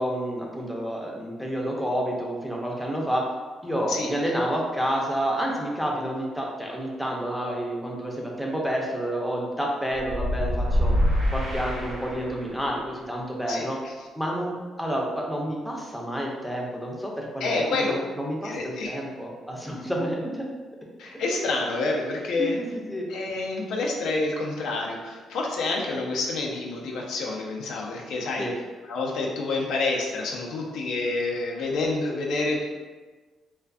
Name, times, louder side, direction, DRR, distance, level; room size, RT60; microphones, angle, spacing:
voice 1, 0.0-3.3 3.6-10.9 11.3-13.8 14.1-20.5 22.4-23.1 28.4-28.5, equal, ahead, -2 dB, 0.5 m, -29 dB
sound 1, 9.9-12.6, equal, 80° right, 0.8 m, -25 dB
voice 2, 13.5-13.9 17.4-17.9 18.4-19.0 21.0-22.6 23.1-28.5 28.9-32.6, left 3 dB, 80° left, -1 dB, 0.4 m, -28 dB
2.5 x 2.4 x 2.3 m, 1.3 s
cardioid pair, 90°, 0 cm